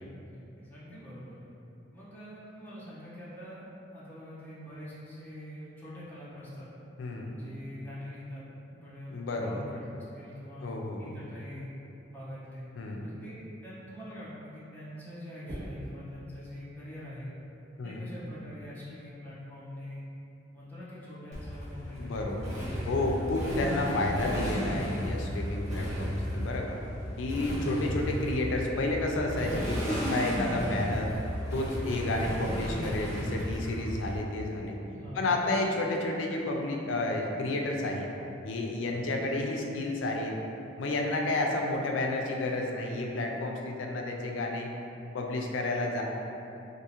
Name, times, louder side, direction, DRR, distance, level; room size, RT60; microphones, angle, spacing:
voice 1, 0.0-1.5 1.9-3.6 3.9-6.7 7.3-10.7 11.0-11.7 12.1-12.6 13.0-17.3 17.8-20.0 20.5-22.2 34.9-35.3 38.8-39.1, left 1 dB, 10° left, -11 dB, 0.9 m, -44 dB
voice 2, 7.0-7.4 9.1-9.6 10.6-11.2 12.8-13.1 17.8-18.1 22.0-22.5 22.9-26.8 27.2-31.1 31.5-34.8 35.1-38.1 38.4-40.4 40.8-44.7 45.1-46.0, left 2 dB, 85° left, 1 dB, 0.4 m, -31 dB
sound 1, 15.5-16.0 18.0-18.3, equal, 25° right, 1.3 m, -42 dB
Motorcycle, 21.3-34.2, equal, 40° right, 1.1 m, -34 dB
3.6 x 2.6 x 2.8 m, 2.9 s
head